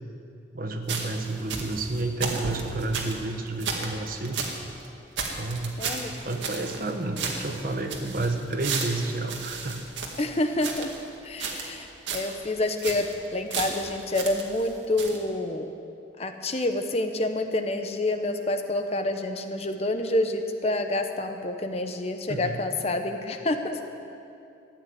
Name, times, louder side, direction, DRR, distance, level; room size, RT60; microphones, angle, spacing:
voice 1, 0.5-4.5 5.3-5.8 6.2-9.9 22.3-22.6, right 2 dB, 50° right, 5 dB, 1.2 m, -30 dB
sound 1, 0.9-4.6 4.8-4.9 5.2-6.9 7.2-11.0 11.4-11.8 12.1-12.3 12.6-13.1 13.5-14.7 15.0-15.2, right 4 dB, 85° right, 2.0 m, -33 dB
voice 2, 5.8-6.1 10.2-10.9 11.2-15.7 16.2-24.0, left 2 dB, 35° left, 6 dB, 0.9 m, -28 dB
15.0 x 10.0 x 9.3 m, 2.7 s
head